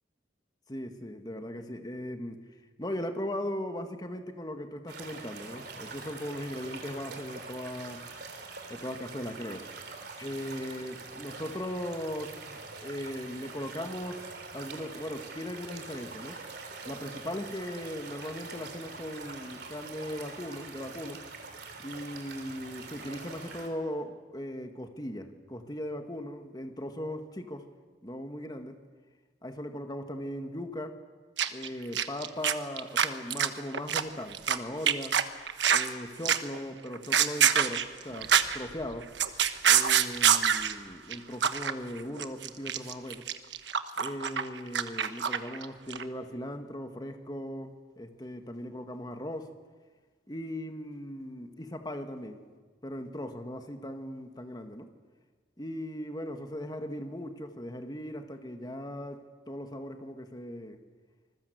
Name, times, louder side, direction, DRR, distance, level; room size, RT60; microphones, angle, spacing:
voice 1, 0.7-2.4 2.8-8.1 8.7-9.7 10.2-14.3 14.5-16.4 16.9-21.3 21.8-27.7 28.0-28.8 29.4-31.0 31.5-35.2 35.7-39.1 39.7-43.3 44.0-49.5 50.3-52.4 52.8-54.9 55.6-60.8, left 1 dB, 25° left, 6 dB, 1.7 m, -38 dB
sound 1, 4.9-23.7, right 4 dB, 65° right, 3.7 m, -44 dB
sound 2, 31.4-31.7 31.9-34.6 34.9-35.9 36.3-36.6 36.9-38.6 38.9-40.7 41.1-41.2 41.4-41.7 42.0-45.6 45.9-46.0, right 8 dB, 80° right, 1.2 m, -25 dB
26.5 x 20.5 x 8.0 m, 1.4 s
head